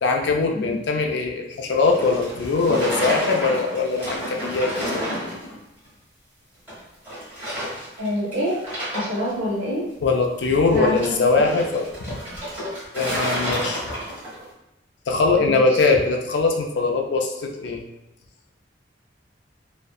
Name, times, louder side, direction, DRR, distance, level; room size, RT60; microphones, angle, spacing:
voice 1, 0.0-4.7 10.0-12.2 12.9-13.8 15.1-17.8, left 3 dB, 70° left, 2 dB, 0.3 m, -21 dB
sound 1, 1.8-5.6 5.8-5.9 6.7-6.8 7.1-8.1 8.3-9.3 10.7-14.4, equal, 10° right, 1.2 m, -30 dB
voice 2, 8.0-8.6 8.9-9.9 10.7-11.4, left 1 dB, 75° right, -5 dB, 0.9 m, -26 dB
2.6 x 2.1 x 2.3 m, 0.90 s
head